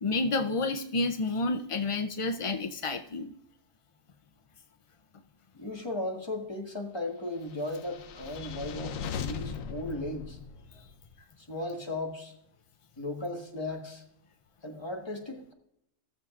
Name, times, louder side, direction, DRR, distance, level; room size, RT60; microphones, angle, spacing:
voice 1, 0.0-3.3 8.4-8.6, left 3 dB, 60° left, 7 dB, 0.3 m, -30 dB
voice 2, 5.5-10.4 11.4-12.3 13.0-14.0 14.6-15.5, left 2 dB, 20° left, 1 dB, 1.4 m, -36 dB
sound 1, 7.6-11.0, left 6 dB, 80° left, 1.1 m, -39 dB
17.5 x 7.1 x 2.4 m, 0.77 s
omnidirectional pair, 1.4 m